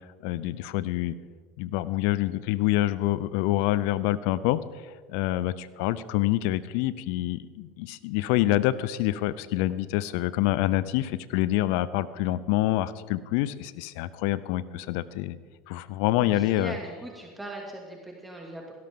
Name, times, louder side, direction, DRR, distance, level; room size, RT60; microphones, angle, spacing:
voice 1, 0.2-1.1 1.6-15.4 15.7-16.8, left 15 dB, 65° left, 17 dB, 0.6 m, -26 dB
voice 2, 16.2-18.7, right 2 dB, 10° right, -1 dB, 2.5 m, -40 dB
16.5 x 12.5 x 3.8 m, 1.5 s
hypercardioid pair, 80°, 0 cm